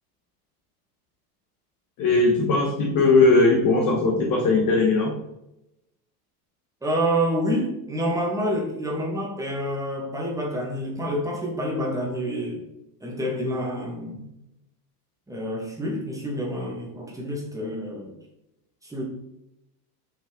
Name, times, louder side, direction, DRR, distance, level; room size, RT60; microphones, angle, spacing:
voice 1, 2.0-5.1, left 3 dB, 45° left, 0 dB, 1.4 m, -19 dB
voice 2, 6.8-12.6 13.0-14.3 15.3-18.2 18.8-19.0, equal, 5° right, -2 dB, 1.5 m, -28 dB
5.6 x 5.6 x 3.7 m, 0.86 s
supercardioid pair, 145°, 48 cm